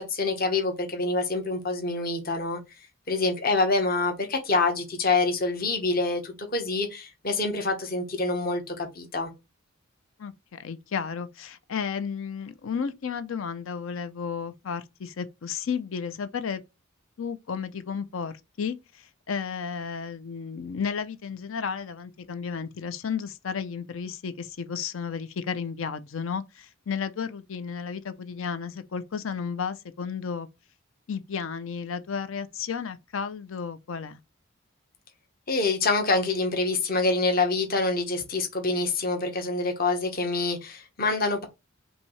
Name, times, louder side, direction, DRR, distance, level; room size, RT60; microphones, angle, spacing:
voice 1, 0.0-2.6 3.1-9.3 35.5-41.4, left 3 dB, 45° left, 1.1 m, -26 dB
voice 2, 10.2-16.6 17.2-30.5 31.1-34.2, left 6 dB, 70° left, 0.5 m, -33 dB
5.5 x 2.7 x 3.1 m
head